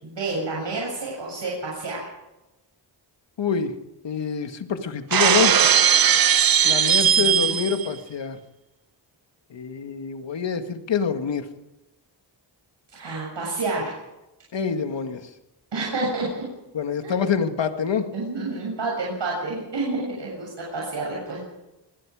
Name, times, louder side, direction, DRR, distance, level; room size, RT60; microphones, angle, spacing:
voice 1, 0.0-2.0 7.0-7.6 12.9-13.9 15.7-16.3 17.0-17.2 18.1-21.4, right 3 dB, 70° right, -3 dB, 7.5 m, -29 dB
voice 2, 3.4-3.7 4.0-5.6 6.6-8.4 9.5-11.5 14.5-15.2 16.7-18.1, left 6 dB, 75° left, 7 dB, 2.0 m, -26 dB
Shatter, 5.1-7.9, right 8 dB, 50° right, 0.8 m, -18 dB
24.5 x 21.0 x 5.0 m, 0.96 s
cardioid pair, 85°, 45 cm